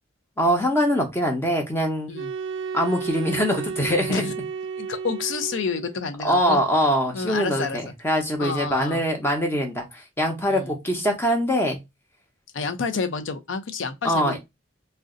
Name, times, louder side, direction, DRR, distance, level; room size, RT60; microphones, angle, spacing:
voice 1, 0.4-2.1 2.7-4.3 6.2-11.8 14.0-14.4, equal, 10° left, 0.7 m, -23 dB
sound 1, 2.1-6.0, right 6 dB, 75° right, 0.4 m, -32 dB
voice 2, 4.8-6.6 7.1-7.8 8.4-9.0 10.5-10.7 12.5-14.4, left 4 dB, 75° left, 0.5 m, -29 dB
2.5 x 2.2 x 3.7 m
head